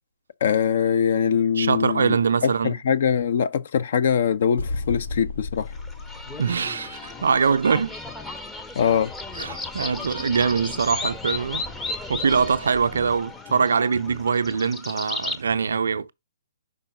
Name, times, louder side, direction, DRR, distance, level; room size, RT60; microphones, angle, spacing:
voice 1, 0.4-2.2 2.4-5.7 8.8-9.1, left 7 dB, 50° left, 0.7 m, -22 dB
voice 2, 1.6-2.7 6.4-8.0 9.4-11.7 12.1-16.1, right 5 dB, 60° right, 0.5 m, -23 dB
sound 1, 4.6-7.3, left 3 dB, 70° left, 1.2 m, -33 dB
sound 2, 5.7-15.4, left 3 dB, 10° left, 0.7 m, -34 dB
5.4 x 4.2 x 5.2 m
figure-of-eight pair, 125°, 0 cm